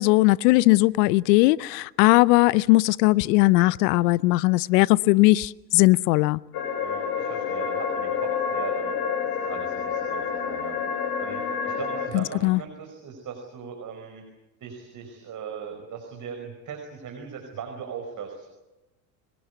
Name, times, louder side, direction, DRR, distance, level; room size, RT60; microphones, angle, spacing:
voice 1, 0.0-6.4 12.1-12.6, left 21 dB, 75° left, 0.8 m, -19 dB
sound 1, 6.5-12.1, left 6 dB, 50° left, 6.3 m, -28 dB
voice 2, 6.8-8.9 9.3-10.8 11.2-14.2 14.6-18.5, right 6 dB, 40° right, 5.2 m, -39 dB
24.0 x 21.0 x 8.3 m
supercardioid pair, 100°, 49 cm